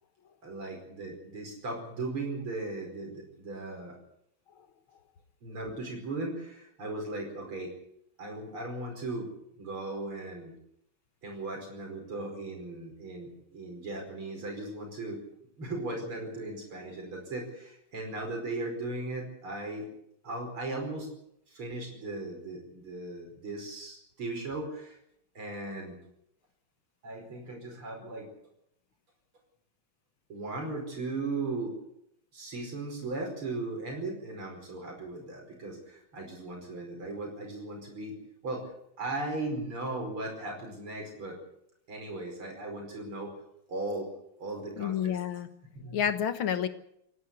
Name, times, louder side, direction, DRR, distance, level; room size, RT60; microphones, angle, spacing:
voice 1, 0.4-4.0 5.4-7.7 8.2-9.3 9.6-10.5 11.2-15.2 15.6-19.9 20.2-21.1 21.5-25.0 25.4-26.0 27.0-28.3 30.3-31.7 32.3-38.2 38.4-38.7 39.0-41.4 41.9-43.3 43.7-44.1 44.4-45.2 45.7-46.0, right 2 dB, 85° right, 2 dB, 5.8 m, -37 dB
voice 2, 44.8-45.5 45.9-46.7, left 9 dB, 75° left, 10 dB, 2.2 m, -29 dB
28.0 x 11.5 x 8.4 m, 0.76 s
omnidirectional pair, 2.3 m